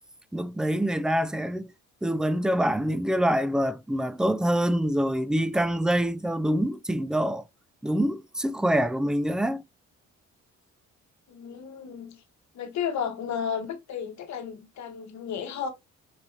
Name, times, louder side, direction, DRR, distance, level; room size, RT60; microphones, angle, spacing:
voice 1, 0.3-1.7 2.0-7.4 7.8-9.6, equal, ahead, 0.3 m, -25 dB
voice 2, 11.3-12.2 12.5-15.7, left 7 dB, 70° left, 1.1 m, -33 dB
4.8 x 2.8 x 2.4 m
cardioid pair, 90°, 30 cm